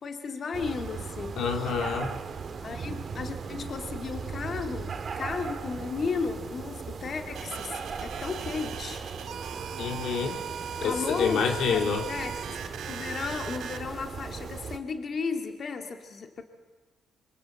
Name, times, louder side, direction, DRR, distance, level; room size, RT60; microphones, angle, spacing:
voice 1, 0.0-1.7 2.6-9.0 10.2-10.3 10.8-16.4, left 5 dB, 50° left, 6 dB, 2.2 m, -35 dB
sound 1, 0.5-14.8, right 5 dB, 50° right, 2.1 m, -38 dB
voice 2, 1.4-2.1 9.8-10.4 10.8-12.1, left 6 dB, 70° left, 5 dB, 2.3 m, -27 dB
sound 2, 7.3-13.8, right 7 dB, 70° right, 3.6 m, -38 dB
26.5 x 24.5 x 7.7 m, 1.2 s
cardioid pair, 90°, 0 cm